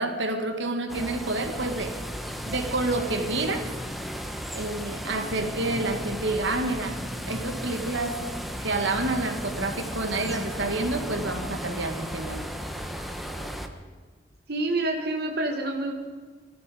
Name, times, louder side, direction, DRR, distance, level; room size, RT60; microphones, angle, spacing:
voice 1, 0.0-2.0 2.4-3.7 4.5-7.0 7.2-8.3 8.6-12.5, right 2 dB, 85° right, 5 dB, 1.8 m, -28 dB
sound 1, 0.9-13.7, equal, ahead, 1.0 m, -35 dB
voice 2, 14.5-15.9, right 2 dB, 60° right, 2 dB, 1.4 m, -27 dB
19.5 x 14.0 x 5.0 m, 1.5 s
head